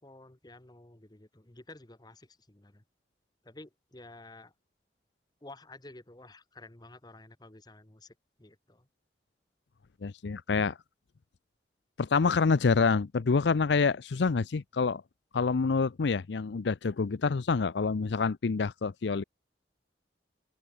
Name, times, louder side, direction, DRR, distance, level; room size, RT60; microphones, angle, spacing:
voice 1, 0.0-2.8 3.4-4.5 5.4-8.9, left 2 dB, 25° left, 1.4 m, -51 dB
voice 2, 10.0-10.8 12.0-15.0 15.3-19.2, left 4 dB, 80° left, 0.5 m, -27 dB
head